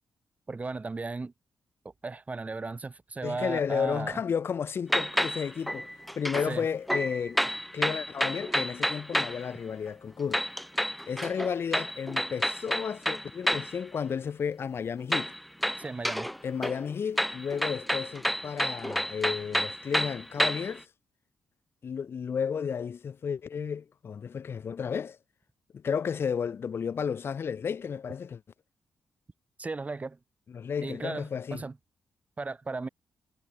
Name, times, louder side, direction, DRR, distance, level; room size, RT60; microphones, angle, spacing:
voice 1, 0.5-1.3 2.0-4.2 6.4-6.7 15.8-16.3 29.6-30.2 30.8-31.7 32.4-32.9, right 3 dB, 30° right, 2.0 m, -35 dB
voice 2, 3.2-5.9 6.2-10.4 11.1-15.3 16.4-20.9 21.8-25.2 25.7-28.4 30.5-31.6, left 7 dB, 55° left, 1.0 m, -32 dB
sound 1, 4.9-6.5 6.9-9.4 10.3-13.8 15.1-16.4 16.6-20.8, equal, ahead, 0.4 m, -30 dB
cardioid pair, 60°, 5 cm